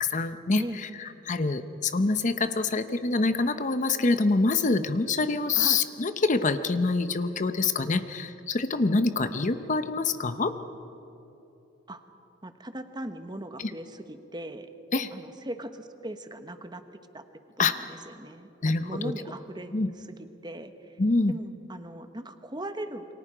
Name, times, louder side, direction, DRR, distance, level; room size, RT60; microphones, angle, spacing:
voice 1, 0.0-0.6 1.0-10.5 13.6-13.7 14.9-15.1 17.6-17.7 18.6-18.9 19.7-19.9 21.0-21.3, left 3 dB, 40° left, 10 dB, 0.7 m, -25 dB
voice 2, 12.4-14.7 15.1-16.8 17.1-17.2 17.6-21.0 21.3-23.1, right 1 dB, 20° right, 8 dB, 1.1 m, -39 dB
28.5 x 24.0 x 5.0 m, 3.0 s
head